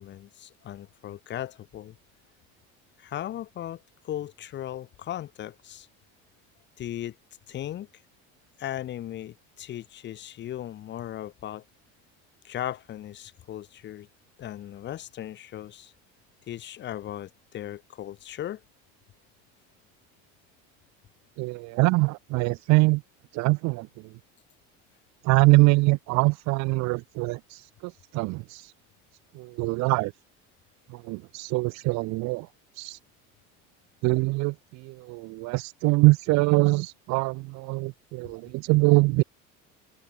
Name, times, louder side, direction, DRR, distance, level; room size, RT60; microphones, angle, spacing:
voice 1, 0.0-2.0 3.0-5.9 6.8-7.1 7.5-7.9 8.6-11.6 12.4-14.1 14.4-15.9 16.5-18.6, left 12 dB, 35° left, 1.1 m, -37 dB
voice 2, 21.4-23.0 23.3-24.1 25.2-28.7 29.3-30.1 30.9-32.5 32.7-33.0 34.0-39.2, right 24 dB, 55° right, 0.7 m, -24 dB
cardioid pair, 155°, 34 cm